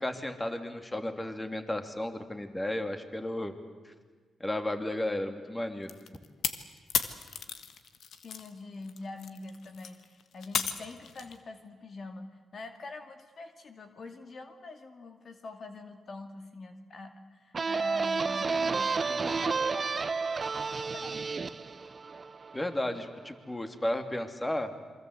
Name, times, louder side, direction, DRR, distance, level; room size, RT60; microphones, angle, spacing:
voice 1, 0.0-3.5 3.8-3.9 4.4-6.0 19.1-19.4 22.5-24.7, left 1 dB, 15° left, 7 dB, 2.8 m, -33 dB
sound 1, 5.9-8.5 8.8-11.4, left 7 dB, 75° left, 1.5 m, -34 dB
voice 2, 8.2-19.8 20.9-21.3, left 3 dB, 55° left, 6 dB, 2.2 m, -45 dB
sound 2, 17.5-23.0, right 4 dB, 45° right, 0.8 m, -31 dB
27.0 x 23.5 x 8.1 m, 1.5 s
supercardioid pair, 60°, 0 cm